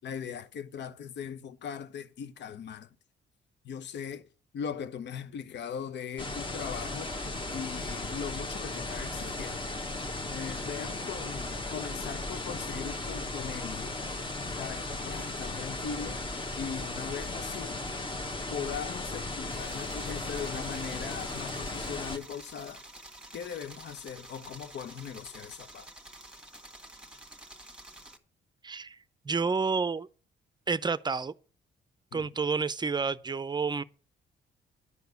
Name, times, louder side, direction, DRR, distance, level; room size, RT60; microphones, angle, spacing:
voice 1, 0.0-2.9 3.6-4.3 4.5-7.2 7.5-9.7 10.3-14.0 14.6-16.3 16.5-17.8 18.5-22.8 23.3-25.9 32.1-32.3, left 7 dB, 65° left, 0.9 m, -39 dB
sound 1, 6.2-22.2, left 2 dB, 25° left, 1.3 m, -36 dB
sound 2, 19.5-28.2, right 1 dB, 5° right, 1.6 m, -49 dB
voice 2, 28.6-29.0 29.2-30.1 30.7-31.3 32.1-33.8, right 4 dB, 20° right, 0.6 m, -29 dB
11.0 x 4.8 x 7.9 m
cardioid pair, 90°, 20 cm